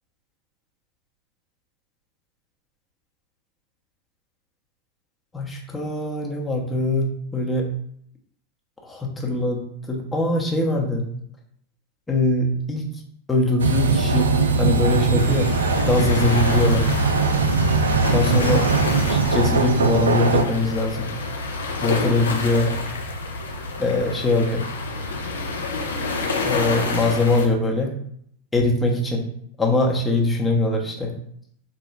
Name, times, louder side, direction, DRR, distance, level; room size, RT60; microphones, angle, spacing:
voice 1, 5.3-7.6 8.8-9.6 9.9-11.0 12.1-12.9 13.3-14.3 14.6-15.5 15.8-16.9 18.1-18.6 19.1-21.1 21.8-22.7 23.8-24.6 26.4-27.9 28.5-29.2 29.6-31.1, left 2 dB, 10° left, 0 dB, 0.8 m, -22 dB
sound 1, 13.6-20.4, right 4 dB, 70° right, 0.3 m, -20 dB
sound 2, 15.2-27.5, left 3 dB, 70° left, 0.5 m, -29 dB
3.8 x 2.2 x 3.2 m, 0.67 s
figure-of-eight pair, 90°, 0 cm